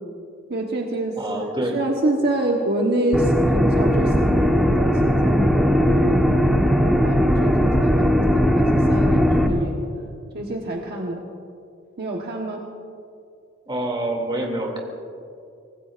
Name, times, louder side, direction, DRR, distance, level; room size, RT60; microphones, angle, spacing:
voice 1, 0.5-6.3 6.7-9.8 10.3-11.2 12.0-12.7, right 1 dB, 55° right, 0 dB, 1.3 m, -27 dB
voice 2, 1.2-1.8 13.7-14.8, right 1 dB, 25° right, 0 dB, 2.6 m, -26 dB
sound 1, 3.1-9.5, equal, ahead, 1.2 m, -18 dB
24.5 x 19.0 x 2.5 m, 2.5 s
head